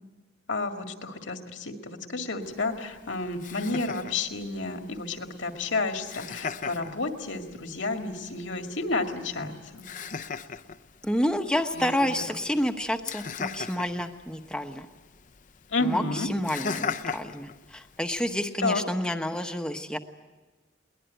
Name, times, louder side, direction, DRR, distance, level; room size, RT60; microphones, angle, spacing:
voice 1, 0.5-9.9 11.7-12.1 15.7-16.3 18.6-18.8, left 3 dB, 85° left, 4 dB, 2.1 m, -31 dB
Laughter, 2.4-18.4, left 5 dB, 45° left, 0.7 m, -40 dB
voice 2, 11.0-14.9 15.8-20.0, left 1 dB, 5° left, 5 dB, 1.1 m, -29 dB
22.0 x 19.5 x 9.2 m, 1.3 s
head